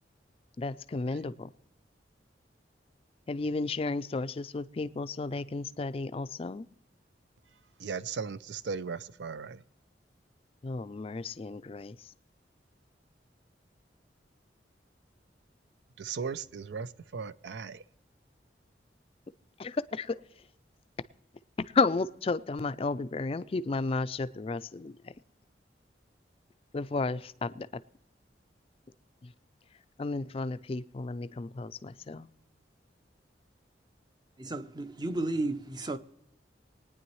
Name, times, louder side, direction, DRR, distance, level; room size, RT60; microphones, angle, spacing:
voice 1, 0.6-1.5 3.3-6.7 10.6-12.0 19.6-20.2 21.6-25.1 26.7-27.7 29.2-29.3 30.0-32.3, left 3 dB, 30° left, 0.4 m, -33 dB
voice 2, 7.8-9.6 16.0-17.8, right 5 dB, 75° right, 0.4 m, -37 dB
voice 3, 34.4-36.0, right 2 dB, 25° right, 0.6 m, -33 dB
23.0 x 9.6 x 3.1 m
head